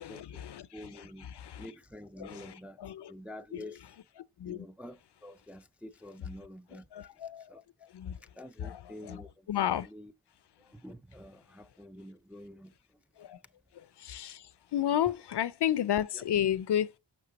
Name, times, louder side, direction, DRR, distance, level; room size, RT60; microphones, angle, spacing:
voice 1, 0.0-1.7 2.2-3.1 3.5-3.7 4.4-4.7 6.9-7.5 7.8-8.2 8.6-9.2 9.5-9.9 13.2-13.4 13.7-17.0, left 10 dB, 65° left, 0.5 m, -33 dB
voice 2, 0.7-1.3 1.6-2.8 3.1-3.8 4.4-6.9 7.5-7.6 8.4-9.3 9.7-10.1 10.6-12.7 16.1-16.2, left 1 dB, 5° right, 0.3 m, -47 dB
6.3 x 6.0 x 2.9 m
cardioid pair, 40°, 44 cm